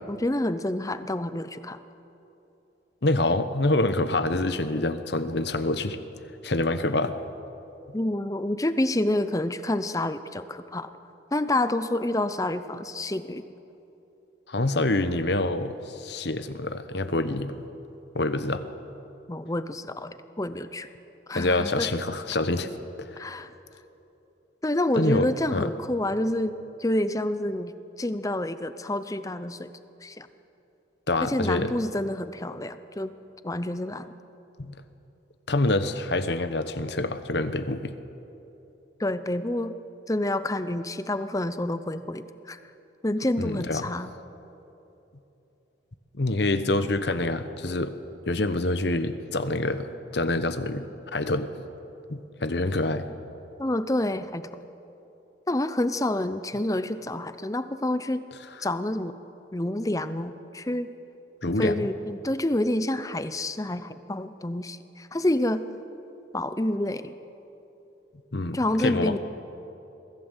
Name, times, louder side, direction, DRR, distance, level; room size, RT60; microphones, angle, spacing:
voice 1, 0.0-1.8 7.9-10.9 11.3-13.4 19.3-20.9 21.3-21.9 23.2-23.5 24.6-29.7 30.0-30.3 31.2-33.1 33.4-34.1 39.0-39.7 40.1-42.6 43.0-44.1 53.6-54.7 55.5-58.2 58.6-59.2 59.5-60.9 61.6-65.6 66.3-67.1 68.5-69.2, left 1 dB, 15° left, 12 dB, 0.6 m, -28 dB
voice 2, 3.0-6.0 6.4-7.2 14.5-17.7 18.1-18.6 21.3-22.7 23.0-23.3 24.9-25.7 31.1-31.7 34.6-34.8 35.5-37.9 43.4-43.9 46.1-47.9 48.3-49.9 50.1-50.8 51.1-51.5 52.1-53.1 61.4-61.8 68.3-69.1, left 2 dB, 60° left, 11 dB, 1.0 m, -26 dB
23.0 x 15.5 x 8.1 m, 3.0 s
head